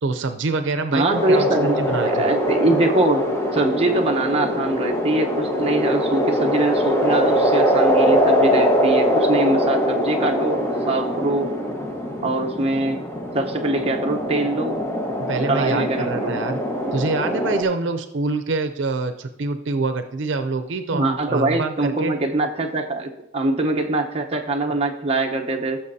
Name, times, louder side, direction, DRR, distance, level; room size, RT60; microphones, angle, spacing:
voice 1, 0.0-2.3 15.3-16.6 16.9-22.1, right 3 dB, 80° right, 8 dB, 0.6 m, -25 dB
voice 2, 0.9-3.2 3.5-11.5 12.2-13.0 13.3-14.9 15.5-16.4 20.9-25.8, right 2 dB, 35° right, 2 dB, 1.0 m, -23 dB
sound 1, 1.1-17.6, equal, 15° left, 1.3 m, -22 dB
16.0 x 7.0 x 2.8 m, 0.88 s
head